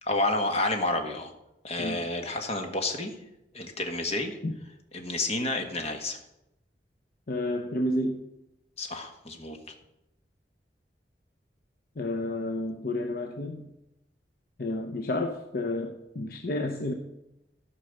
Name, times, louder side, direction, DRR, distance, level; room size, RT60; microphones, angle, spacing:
voice 1, 0.0-1.3 1.6-3.2 3.5-4.4 4.9-6.2 8.8-9.6, left 2 dB, 35° left, 5 dB, 1.5 m, -30 dB
voice 2, 7.3-8.2 12.0-13.6 14.6-16.9, left 1 dB, 55° left, 4 dB, 0.8 m, -30 dB
13.0 x 5.5 x 6.6 m, 0.88 s
head